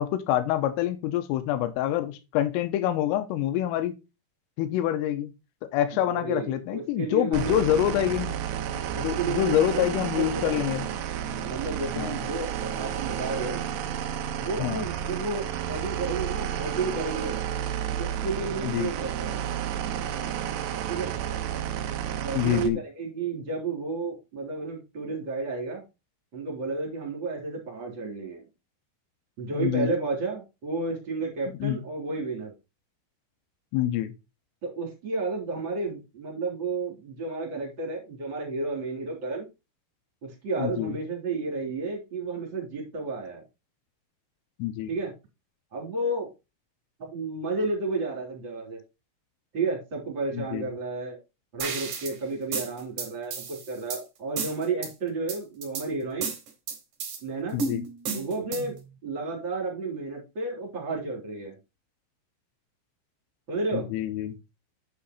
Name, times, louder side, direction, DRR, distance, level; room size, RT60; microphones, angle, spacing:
voice 1, 0.0-3.9 4.6-5.3 5.7-8.4 9.0-10.8 12.0-12.2 14.6-14.9 18.6-18.9 22.4-22.8 29.5-29.9 31.6-31.8 33.7-34.1 40.6-41.0 44.6-44.9 50.3-50.7 57.5-57.8 63.7-64.4, left 12 dB, 85° left, 3.5 m, -26 dB
voice 2, 5.9-7.6 8.1-8.2 8.9-9.9 10.2-10.8 11.4-13.6 14.4-17.4 18.0-19.4 20.9-21.1 22.2-25.8 26.3-28.5 29.4-32.5 34.6-39.5 40.2-43.4 44.9-45.1 45.7-46.3 47.0-48.8 49.5-51.2 51.5-56.3 57.2-57.6 58.1-58.8 59.0-61.6 63.5-63.9, right 3 dB, 25° right, 3.3 m, -32 dB
sound 1, 7.3-22.7, right 9 dB, 75° right, 2.5 m, -31 dB
sound 2, 51.6-52.1 52.5-54.0 54.4-54.9 55.3-55.8 56.2-57.2 57.6-58.8, right 5 dB, 50° right, 2.8 m, -32 dB
8.7 x 6.4 x 4.1 m
omnidirectional pair, 5.9 m